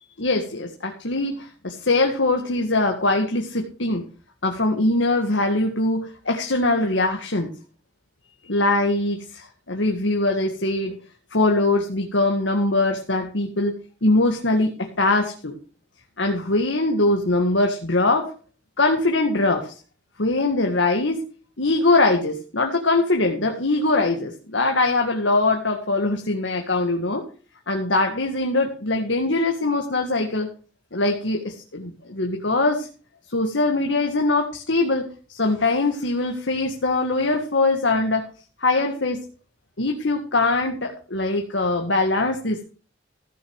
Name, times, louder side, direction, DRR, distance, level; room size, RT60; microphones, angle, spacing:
voice 1, 0.2-4.0 4.4-7.5 8.4-11.0 11.3-13.8 14.0-15.5 16.2-18.3 18.8-19.7 20.2-21.2 21.6-27.2 27.7-30.5 30.9-32.9 33.3-38.2 38.6-39.2 39.8-42.7, left 2 dB, 80° left, 3 dB, 1.9 m, -22 dB
15.0 x 6.4 x 6.4 m, 0.37 s
head